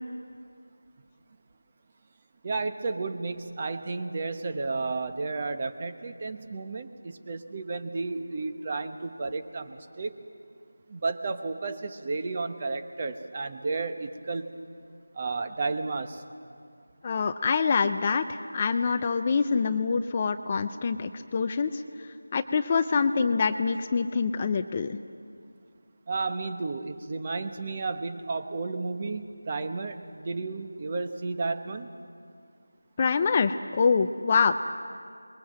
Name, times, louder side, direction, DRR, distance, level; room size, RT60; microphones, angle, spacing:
voice 1, 2.4-10.1 10.9-14.5 15.1-16.2 26.1-31.9, right 3 dB, 30° right, 7 dB, 1.2 m, -32 dB
voice 2, 17.0-25.0 33.0-34.5, left 5 dB, 25° left, 9 dB, 0.6 m, -25 dB
28.0 x 22.0 x 7.7 m, 2.3 s
figure-of-eight pair, 170°, 0 cm